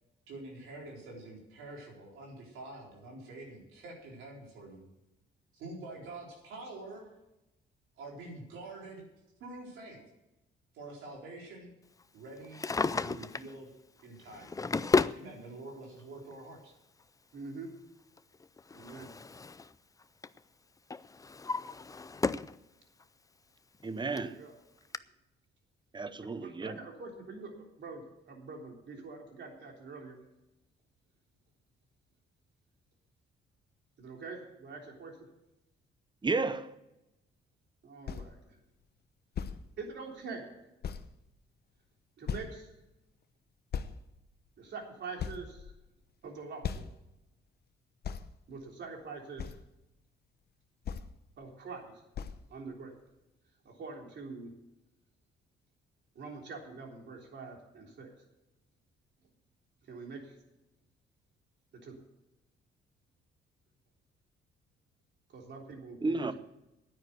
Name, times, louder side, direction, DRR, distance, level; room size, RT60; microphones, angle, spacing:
voice 1, 0.3-4.8 5.5-7.1 8.0-9.0 9.4-10.0 10.7-11.7 12.1-13.7 14.0-14.5 15.1-16.7, right 2 dB, 90° right, 4.1 m, -46 dB
Drawer open or close, 12.4-13.5 14.3-15.2 16.3-16.4 18.2-19.7 20.0-20.4 20.9-22.6 23.0-23.1 23.8-23.9 24.2-24.3 24.9-25.0, left 4 dB, 15° left, 0.4 m, -32 dB
voice 2, 17.3-17.7 18.7-19.1 24.3-24.6 26.4-28.0 28.3-30.2 34.0-35.2 37.8-38.4 39.8-40.5 42.2-42.7 44.6-45.7 46.2-46.8 48.5-49.5 51.4-51.9 52.5-52.9 53.7-54.5 56.2-58.1 59.9-60.2 61.7-62.0 65.3-66.4, right 4 dB, 60° right, 3.5 m, -44 dB
voice 3, 23.8-24.4 25.9-26.8 36.2-36.7 66.0-66.4, right 3 dB, 25° right, 0.9 m, -32 dB
sound 1, 38.1-38.3 39.4-39.6 40.3-40.4 40.8-41.1 42.3-42.6 43.7-43.9 44.6-44.7 45.2-46.0 46.6-47.0 48.0-48.3 49.4-49.6 50.9-51.1 52.1-52.4, left 7 dB, 55° left, 0.9 m, -37 dB
9.6 x 9.5 x 8.0 m
cardioid pair, 90°, 20 cm